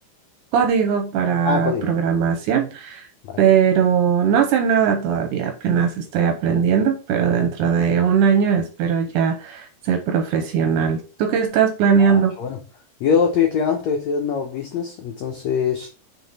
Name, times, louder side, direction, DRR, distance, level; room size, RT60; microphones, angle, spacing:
voice 1, 0.5-3.1 3.4-12.3, right 7 dB, 75° right, 2.0 m, -19 dB
voice 2, 1.4-1.9 3.3-3.5 7.6-7.7 12.0-12.6 13.0-15.9, left 6 dB, 90° left, 1.5 m, -23 dB
6.3 x 3.8 x 4.0 m
omnidirectional pair, 4.2 m